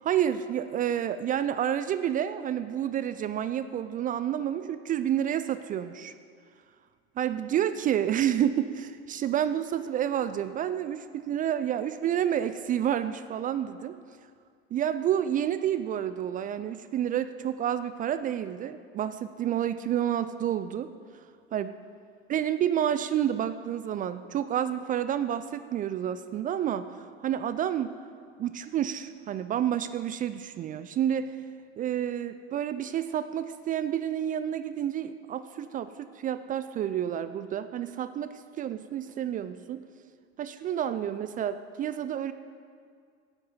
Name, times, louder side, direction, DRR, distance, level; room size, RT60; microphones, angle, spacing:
voice 1, 0.0-6.2 7.2-14.0 14.7-20.9 21.5-21.7 22.3-27.9 28.4-31.4 31.8-39.8 40.4-42.3, right 10 dB, 25° right, 12 dB, 0.3 m, -29 dB
12.0 x 8.5 x 5.5 m, 2.1 s
hypercardioid pair, 75°, 33 cm